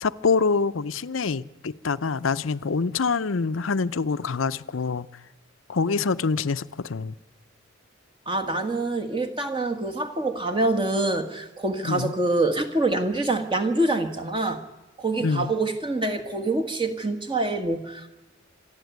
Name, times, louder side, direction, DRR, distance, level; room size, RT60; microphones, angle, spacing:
voice 1, 0.0-5.1 5.7-7.1 11.8-12.1 15.2-15.5, left 4 dB, 75° left, 14 dB, 0.6 m, -25 dB
voice 2, 8.3-14.6 15.0-18.1, right 2 dB, 25° right, 6 dB, 1.8 m, -25 dB
26.0 x 11.5 x 9.4 m, 1.1 s
head